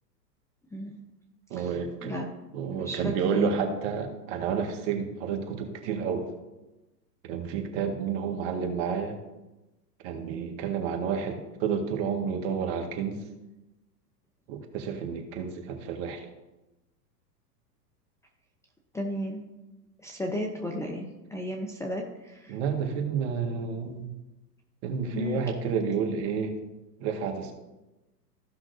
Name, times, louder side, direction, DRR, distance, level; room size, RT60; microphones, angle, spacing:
voice 1, 1.5-2.1 2.5-6.3 7.3-9.2 10.0-13.2 14.5-16.2 22.5-24.1 24.8-26.6 27.0-27.5, right 6 dB, 45° right, 4 dB, 1.9 m, -30 dB
voice 2, 2.7-3.5 18.9-19.4 20.0-22.6 25.1-25.4, left 1 dB, 5° left, 1 dB, 0.7 m, -34 dB
15.5 x 5.9 x 2.7 m, 1.0 s
hypercardioid pair, 115°, 50 cm